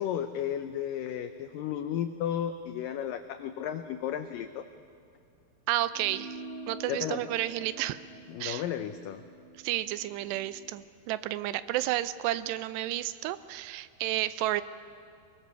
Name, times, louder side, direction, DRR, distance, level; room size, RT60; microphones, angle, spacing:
voice 1, 0.0-4.6 6.9-7.2 8.3-9.2, left 10 dB, 90° left, 9 dB, 1.9 m, -33 dB
voice 2, 5.7-6.4 6.7-8.0 8.4-8.6 9.6-14.6, right 14 dB, 85° right, 15 dB, 2.8 m, -31 dB
sound 1, 5.9-10.7, right 2 dB, 55° left, 4.3 m, -46 dB
24.0 x 22.5 x 6.9 m, 2.4 s
omnidirectional pair, 4.8 m